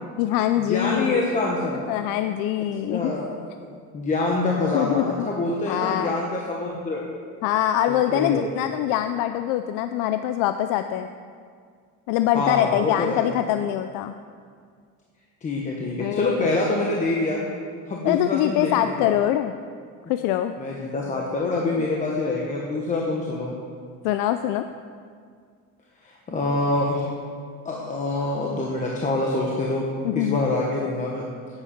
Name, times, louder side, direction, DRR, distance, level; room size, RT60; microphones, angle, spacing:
voice 1, 0.2-1.2 1.9-3.1 4.7-5.2 5.7-6.2 7.4-11.1 12.1-14.2 16.0-16.5 18.0-19.5 20.1-20.6 21.8-21.9 24.0-24.6 30.0-30.4, left 12 dB, 85° left, 9 dB, 0.5 m, -24 dB
voice 2, 0.7-1.8 2.9-3.3 3.9-7.0 8.1-8.5 12.3-13.3 15.4-17.5 17.9-18.7 19.0-19.1 20.6-23.5 26.0-27.1 27.6-29.8 30.1-31.3, left 2 dB, 25° left, -2 dB, 1.1 m, -25 dB
10.5 x 8.7 x 5.8 m, 2.1 s
cardioid pair, 155°, 32 cm